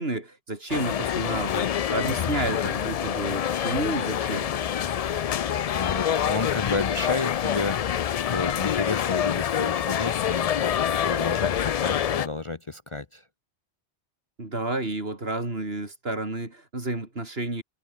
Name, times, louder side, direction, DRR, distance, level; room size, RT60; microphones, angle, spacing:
voice 1, 0.0-4.5 14.4-17.6, right 2 dB, 65° right, 4.4 m, -31 dB
sound 1, 0.7-12.3, left 9 dB, 60° left, 0.4 m, -26 dB
voice 2, 5.7-13.2, left 3 dB, 30° left, 0.8 m, -31 dB
omnidirectional pair, 1.1 m